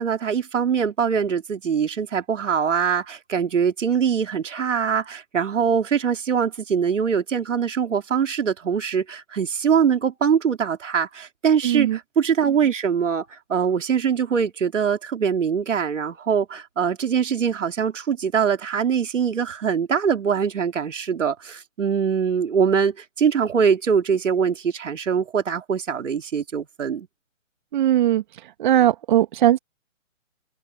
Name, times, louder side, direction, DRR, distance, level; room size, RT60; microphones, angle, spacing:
voice 1, 0.0-27.1, right 7 dB, 65° right, 2.8 m, -23 dB
voice 2, 11.6-12.0 27.7-28.2 28.6-29.6, right 12 dB, 35° right, 1.8 m, -19 dB
open air
hypercardioid pair, 150°, 40 cm